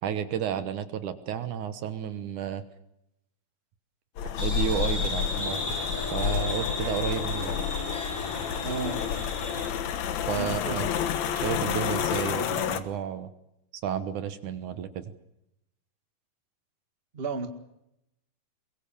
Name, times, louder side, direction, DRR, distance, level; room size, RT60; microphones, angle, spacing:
voice 1, 0.0-2.6 4.2-5.7 6.1-7.5 10.3-10.9 11.4-13.3 13.8-15.0, right 9 dB, 65° right, 11 dB, 2.5 m, -32 dB
sound 1, 4.2-12.8, left 8 dB, 60° left, 2.3 m, -30 dB
Harp, 4.3-10.1, left 4 dB, 45° left, 1.1 m, -40 dB
sound 2, 4.4-9.7, left 1 dB, 85° left, 9.0 m, -35 dB
voice 2, 8.6-9.0 10.4-10.8 17.1-17.5, right 4 dB, 25° right, 7 dB, 1.4 m, -33 dB
23.0 x 22.5 x 7.2 m, 0.83 s
omnidirectional pair, 4.0 m